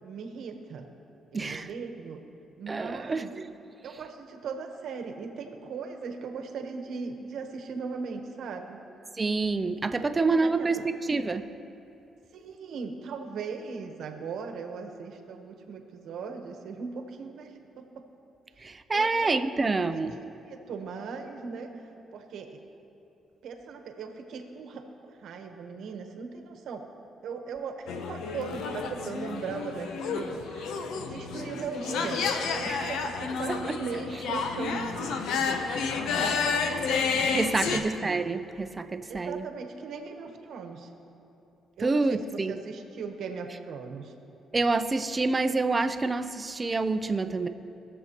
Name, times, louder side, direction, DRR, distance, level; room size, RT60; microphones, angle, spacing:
voice 1, 0.0-0.8 1.3-2.2 2.6-3.3 3.8-8.8 10.0-10.5 12.3-18.0 18.9-19.4 19.9-20.0 20.3-21.7 22.1-22.6 23.4-26.8 27.2-35.6 36.1-36.7 37.2-37.8 39.1-40.9 41.8-44.1, right 5 dB, 75° right, 4 dB, 1.1 m, -39 dB
voice 2, 1.3-1.7 2.7-3.5 9.2-11.5 18.6-20.2 32.7-32.9 33.7-33.8 37.3-39.4 41.8-42.5 44.5-47.5, right 3 dB, 25° right, 10 dB, 0.6 m, -27 dB
sound 1, 27.9-37.8, left 5 dB, 85° left, 0.8 m, -30 dB
20.5 x 7.2 x 3.0 m, 2.8 s
cardioid pair, 90°, 0 cm